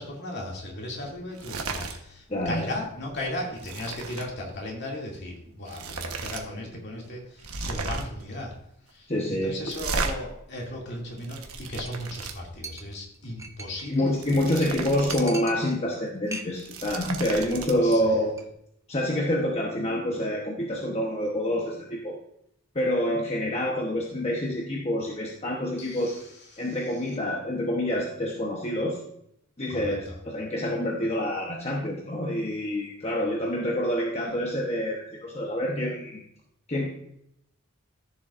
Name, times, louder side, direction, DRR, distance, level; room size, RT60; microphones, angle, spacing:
voice 1, 0.0-8.5 8.9-14.1 17.8-18.0 25.8-26.1 26.5-26.7 29.7-30.2, left 1 dB, 50° left, -1 dB, 2.5 m, -36 dB
sound 1, 1.3-2.0 2.3-2.6 2.9-4.3 5.2-5.3 5.6-6.4 6.7-6.8 7.4-8.2 9.7-10.1 10.9-12.3 14.0-15.3 15.6-15.7 16.4-17.7, right 4 dB, 90° right, 1.2 m, -34 dB
voice 2, 2.3-2.7 9.1-9.6 13.9-18.3 18.9-22.2 22.7-26.2 26.6-29.0 29.6-36.2 36.7-36.9, left 1 dB, 30° left, -2 dB, 1.0 m, -27 dB
Chink clink, 11.8-12.0 12.3-12.4 12.6-14.0 14.3-14.4 14.6-14.7 15.1-16.0 16.3-16.8 17.1-17.4 17.6-18.0 18.3-18.4, right 3 dB, 15° right, 0.7 m, -40 dB
14.0 x 7.1 x 2.5 m, 0.75 s
head